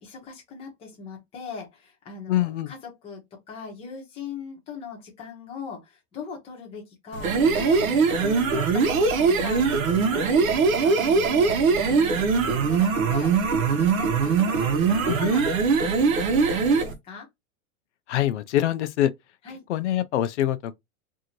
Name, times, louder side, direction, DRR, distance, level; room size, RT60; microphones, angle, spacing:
voice 1, 0.0-2.8 3.0-3.2 3.5-7.9 8.2-15.4 15.8-17.3 19.4-19.6, left 5 dB, 15° left, 0.8 m, -40 dB
voice 2, 2.3-2.7 15.1-15.3 18.1-19.1 19.7-20.7, left 12 dB, 55° left, 0.5 m, -24 dB
sound 1, 7.1-16.9, right 5 dB, 75° right, 1.0 m, -21 dB
2.7 x 2.6 x 2.9 m
supercardioid pair, 170°, 42 cm